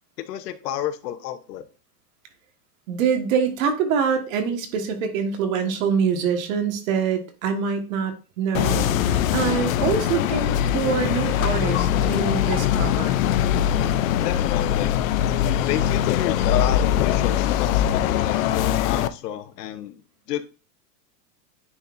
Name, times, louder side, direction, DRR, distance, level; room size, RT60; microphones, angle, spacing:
voice 1, 0.2-1.6 14.2-14.9 15.6-20.0 20.3-20.5, left 11 dB, 70° left, 1.0 m, -30 dB
voice 2, 2.9-13.2, right 6 dB, 55° right, 1.6 m, -25 dB
sound 1, 8.5-19.1, left 10 dB, 55° left, 0.6 m, -22 dB
9.9 x 4.1 x 2.6 m
supercardioid pair, 165°, 49 cm